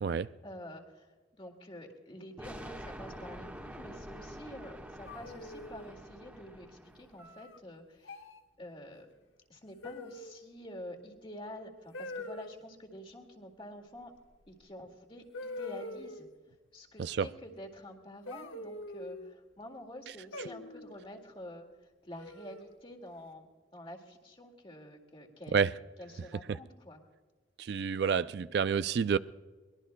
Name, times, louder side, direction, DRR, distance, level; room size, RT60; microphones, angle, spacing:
voice 1, 0.4-1.1 1.4-8.2 8.6-9.1 9.5-14.1 14.5-16.3 16.7-25.6 26.0-27.0, left 1 dB, 30° left, 2.1 m, -48 dB
sound 1, 2.4-7.3, equal, 10° right, 1.3 m, -47 dB
sound 2, 5.1-5.9 7.2-7.6 8.0-8.4 9.8-10.5 11.9-12.5 14.5-14.6 15.3-16.3 18.3-19.3 20.3-21.0 22.2-22.8, left 2 dB, 90° left, 1.2 m, -43 dB
voice 2, 27.6-29.2, right 6 dB, 60° right, 0.3 m, -29 dB
23.5 x 21.0 x 2.2 m
head